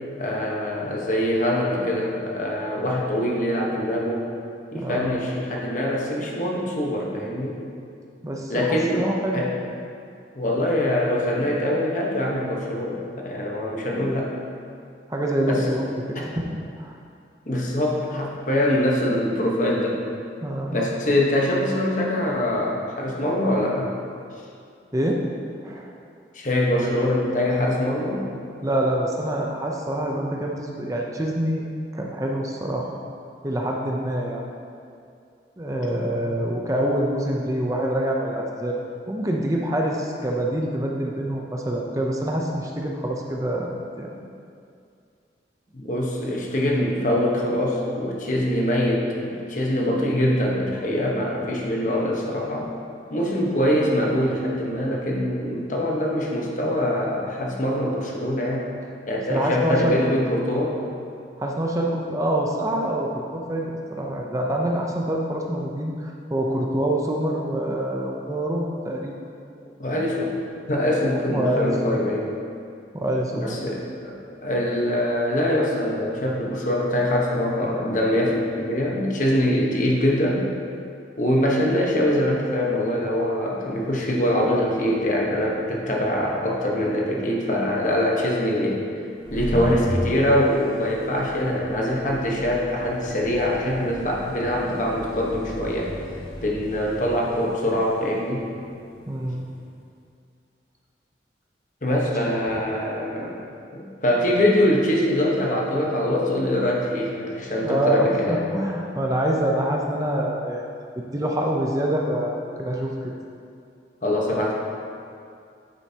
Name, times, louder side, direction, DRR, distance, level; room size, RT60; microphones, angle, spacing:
voice 1, 0.2-4.3 4.7-7.6 8.5-9.5 10.4-14.3 15.5-15.7 16.1-16.3 17.5-20.0 20.7-23.9 26.3-28.3 35.9-36.4 44.1-44.2 45.7-52.7 53.1-58.7 59.1-60.8 69.8-70.4 70.7-72.3 73.3-74.2 74.4-80.5 81.2-88.8 89.3-95.9 96.4-98.5 101.8-103.4 103.7-108.6 114.0-114.5, left 1 dB, 45° left, -2 dB, 1.1 m, -23 dB
voice 2, 4.7-5.2 8.2-9.4 15.1-16.5 16.8-17.0 20.4-20.8 24.9-25.2 25.6-25.9 28.6-31.7 31.9-33.0 33.4-34.4 35.6-38.8 39.1-43.7 44.0-44.1 59.3-60.0 61.4-69.1 71.3-72.3 72.9-73.6 99.1-99.4 102.5-102.8 107.6-110.6 111.1-113.1, right 1 dB, 20° right, -1 dB, 0.6 m, -26 dB
sound 1, 89.1-99.5, equal, 25° left, 1.7 m, -36 dB
9.1 x 7.8 x 2.9 m, 2.4 s
head